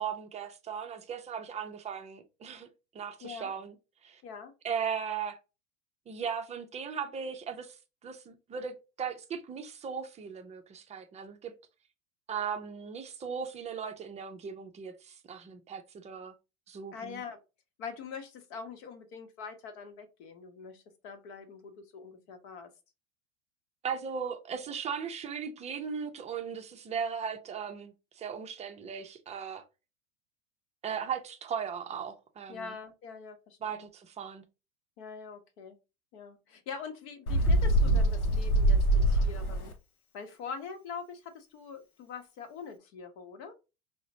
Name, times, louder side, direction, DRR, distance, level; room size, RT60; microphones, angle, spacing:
voice 1, 0.0-2.7 2.9-3.8 4.0-4.2 4.6-5.4 6.1-7.8 8.0-11.6 12.3-16.3 16.7-17.2 23.8-29.6 30.8-32.8 33.6-34.4, right 7 dB, 15° right, 0.5 m, -37 dB
voice 2, 3.2-3.5 4.2-4.5 16.9-17.4 17.8-22.7 32.5-33.9 35.0-35.7 36.1-39.7 40.1-43.5, left 5 dB, 50° left, 1.0 m, -44 dB
Bird, 37.3-39.7, right 1 dB, 90° left, 0.7 m, -24 dB
4.8 x 2.2 x 2.7 m
hypercardioid pair, 90°, 42 cm